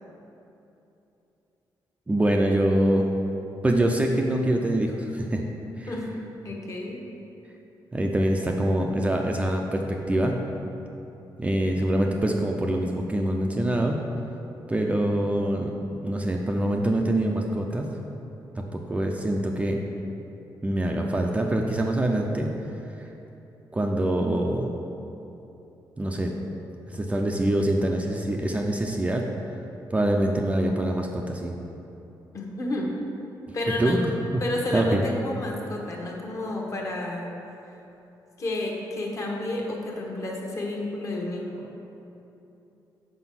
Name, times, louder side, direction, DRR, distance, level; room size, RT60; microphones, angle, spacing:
voice 1, 2.1-3.1 3.6-5.5 5.8-5.9 7.9-10.3 11.4-14.0 14.7-15.7 16.0-17.9 18.6-19.8 20.6-22.5 23.7-24.7 26.0-26.3 26.9-29.2 29.9-31.5 33.8-34.0 34.7-35.0, right 1 dB, 15° right, 1 dB, 0.4 m, -24 dB
voice 2, 6.4-7.0 30.0-30.1 32.3-32.9 33.5-34.0 34.4-37.3 37.6-37.7 38.4-41.7, left 1 dB, 40° left, -1 dB, 1.1 m, -31 dB
5.9 x 4.6 x 5.7 m, 2.9 s
cardioid pair, 135°, 8 cm